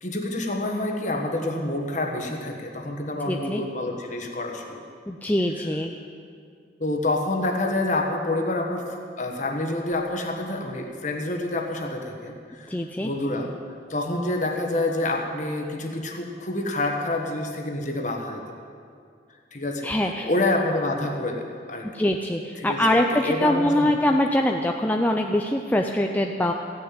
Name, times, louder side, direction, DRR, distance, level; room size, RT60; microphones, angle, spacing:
voice 1, 0.0-4.8 6.8-8.9 9.2-12.7 13.0-13.5 13.9-18.4 19.5-19.9 20.2-21.9 22.6-23.9, left 2 dB, 40° left, 2 dB, 1.5 m, -27 dB
voice 2, 3.3-3.6 5.1-6.0 12.7-13.1 19.8-20.3 21.9-26.5, left 1 dB, 10° left, 2 dB, 0.5 m, -23 dB
sound 1, 9.9-12.2, right 5 dB, 70° left, 2.6 m, -49 dB
15.5 x 6.9 x 9.4 m, 2.3 s
head